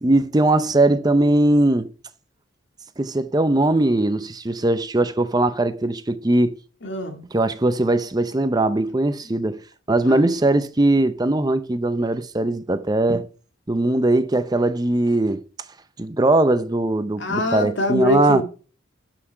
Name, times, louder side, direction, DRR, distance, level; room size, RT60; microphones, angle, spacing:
voice 1, 0.0-1.9 3.0-6.5 7.3-9.6 9.9-13.3 13.7-15.4 16.0-18.4, right 2 dB, 20° right, 0.6 m, -20 dB
voice 2, 6.8-7.2 10.0-10.3 17.2-18.4, left 1 dB, 70° left, 2.2 m, -24 dB
12.5 x 5.9 x 4.6 m
head